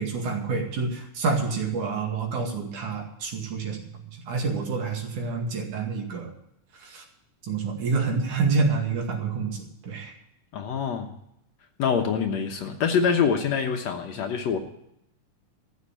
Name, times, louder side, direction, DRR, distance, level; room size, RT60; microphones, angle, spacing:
voice 1, 0.0-3.8 4.3-6.3 6.8-7.0 7.5-9.6 9.8-10.1, right 4 dB, 70° right, 1 dB, 3.6 m, -27 dB
voice 2, 10.5-11.1 11.8-14.6, left 6 dB, 65° left, 4 dB, 2.1 m, -25 dB
14.0 x 7.3 x 9.0 m, 0.79 s
omnidirectional pair, 3.7 m